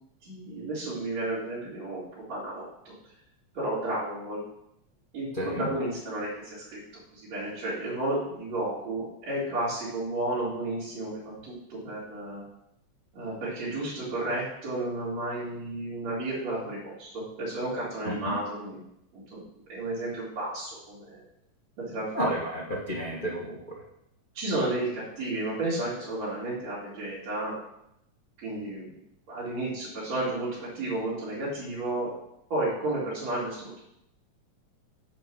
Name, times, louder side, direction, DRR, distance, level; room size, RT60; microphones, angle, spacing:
voice 1, 0.2-2.9 3.5-4.4 5.1-6.8 7.1-12.4 13.1-18.8 19.1-19.4 19.7-21.2 21.8-22.4 24.3-27.6 28.4-28.9 29.3-32.1 32.5-33.8, right 2 dB, 65° right, -10 dB, 4.1 m, -32 dB
voice 2, 5.4-5.7 18.0-18.3 22.1-23.8, right 1 dB, 85° left, -3 dB, 0.4 m, -31 dB
9.1 x 5.2 x 6.2 m, 0.78 s
omnidirectional pair, 3.3 m